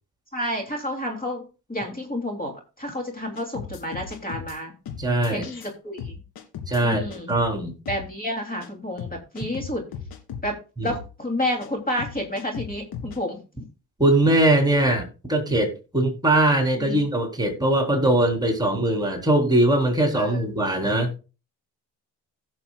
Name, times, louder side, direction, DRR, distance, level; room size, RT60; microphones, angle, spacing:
voice 1, 0.3-1.4 1.7-4.7 5.3-6.2 6.8-7.4 7.9-9.8 10.4-13.6 16.8-17.0 20.1-20.4, left 1 dB, 25° left, 2.9 m, -30 dB
sound 1, 3.4-4.6 4.9-5.7 6.0-7.5 7.9-8.1 8.6-8.7 9.0-10.5 10.9-11.1 11.6-11.7 12.0-13.2, left 7 dB, 75° left, 2.2 m, -36 dB
voice 2, 5.0-5.5 6.7-7.7 10.8-11.0 14.0-21.1, right 1 dB, 10° right, 3.6 m, -21 dB
16.5 x 7.0 x 2.3 m
supercardioid pair, 70°, 37 cm